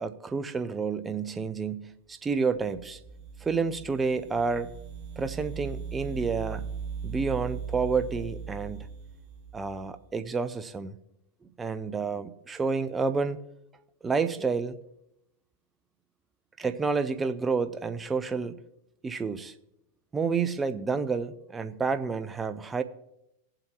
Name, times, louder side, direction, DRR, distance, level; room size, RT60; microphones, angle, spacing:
voice 1, 0.0-3.0 3.4-4.7 5.2-6.6 7.0-8.9 9.5-10.9 11.4-13.4 14.0-14.8 16.6-18.6 19.0-19.5 20.1-22.8, right 4 dB, 15° right, 0.8 m, -29 dB
sound 1, 2.6-10.1, right 6 dB, 40° right, 1.4 m, -39 dB
19.5 x 7.7 x 3.0 m
hypercardioid pair, 100°, 0 cm